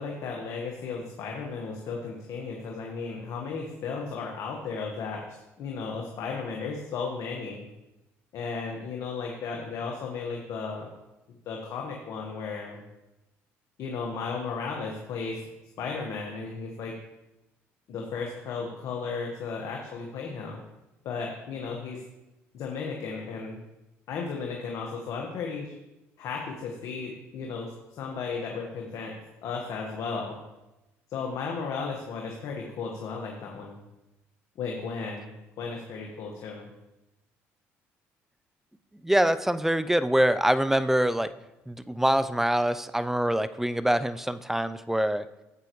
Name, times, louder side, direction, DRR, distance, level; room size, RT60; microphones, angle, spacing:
voice 1, 0.0-7.6 8.3-10.9 11.4-12.8 13.8-15.4 15.8-16.9 17.9-20.6 21.0-22.0 22.5-23.6 24.1-25.7 26.2-30.4 31.1-33.8 34.6-35.3 35.6-36.7, left 5 dB, 65° left, 0 dB, 1.4 m, -35 dB
voice 2, 39.0-41.3 41.7-45.3, right 1 dB, 5° right, 14 dB, 0.4 m, -24 dB
12.0 x 8.0 x 3.1 m, 0.99 s
supercardioid pair, 80°, 6 cm